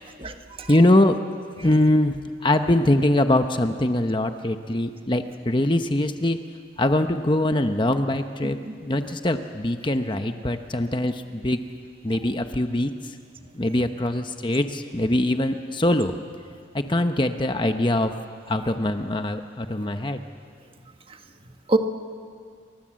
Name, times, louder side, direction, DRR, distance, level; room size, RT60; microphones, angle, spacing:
voice 1, 0.0-0.7 1.6-1.7 8.4-8.7 13.7-13.8 21.7-21.8, right 2 dB, 30° right, 6 dB, 1.5 m, -27 dB
voice 2, 0.7-1.2 1.6-6.4 6.8-11.6 12.0-12.9 13.5-16.1 16.7-18.1 18.5-20.2, left 1 dB, 25° left, 7 dB, 0.9 m, -22 dB
30.0 x 24.5 x 7.6 m, 2.1 s
head